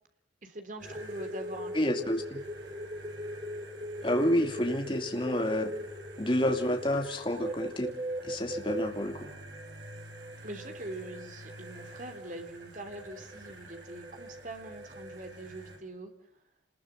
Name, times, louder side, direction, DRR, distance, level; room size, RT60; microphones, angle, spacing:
voice 1, 0.4-1.9 10.4-16.1, right 1 dB, 45° right, 6 dB, 3.4 m, -43 dB
sound 1, 0.8-9.0 9.5-12.5 12.9-15.3, equal, 30° right, 1.4 m, -40 dB
sound 2, 0.8-15.8, right 1 dB, 75° right, 6.4 m, -49 dB
voice 2, 1.7-2.4 4.0-5.7 6.2-7.9 8.2-9.3, left 1 dB, 25° left, 4 dB, 2.5 m, -29 dB
28.5 x 21.0 x 7.7 m, 0.68 s
head